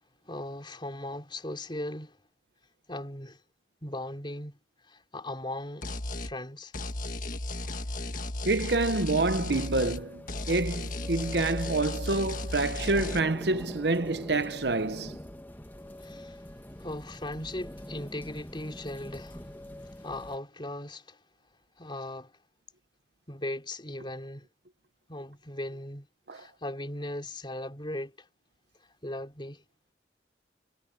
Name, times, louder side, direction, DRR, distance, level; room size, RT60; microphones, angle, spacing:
voice 1, 0.3-2.2 2.9-3.4 3.8-4.6 4.8-6.7 16.0-16.4 16.8-19.5 19.8-21.2 21.8-22.3 23.3-24.5 25.1-26.1 26.3-28.3 29.0-29.6, left 1 dB, 30° left, 3.6 m, -38 dB
sound 1, 5.8-6.3 6.7-10.0 10.3-13.2, left 2 dB, 50° left, 1.6 m, -35 dB
voice 2, 8.4-15.2 26.3-26.4, right 2 dB, 70° right, 1.1 m, -27 dB
sound 2, 9.5-20.4, left 1 dB, 10° left, 1.6 m, -44 dB
head